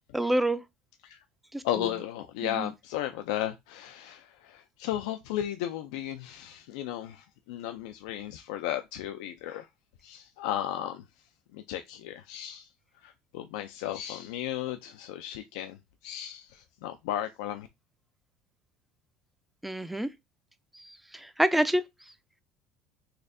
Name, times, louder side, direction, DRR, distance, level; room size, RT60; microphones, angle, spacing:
voice 1, 0.1-0.6 1.5-1.9 2.4-2.7 19.6-20.1 20.7-21.8, right 1 dB, 5° right, 0.3 m, -28 dB
voice 2, 1.6-9.7 10.0-11.0 11.5-12.7 13.0-15.8 16.0-17.7, left 12 dB, 90° left, 0.3 m, -35 dB
4.1 x 2.7 x 2.5 m
cardioid pair, 125°, 3 cm